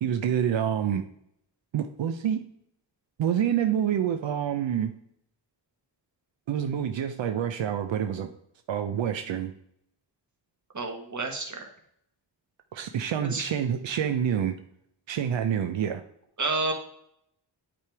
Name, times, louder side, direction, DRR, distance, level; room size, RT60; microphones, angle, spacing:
voice 1, 0.0-1.0 1.7-2.5 3.2-4.9 6.5-8.3 8.7-9.5 12.7-14.6 15.1-16.0, right 9 dB, 90° right, 7 dB, 0.6 m, -27 dB
voice 2, 10.7-11.7 13.3-13.4 16.4-16.7, right 3 dB, 40° right, 3 dB, 1.5 m, -29 dB
8.6 x 3.5 x 4.6 m, 0.72 s
wide cardioid pair, 80°, 44 cm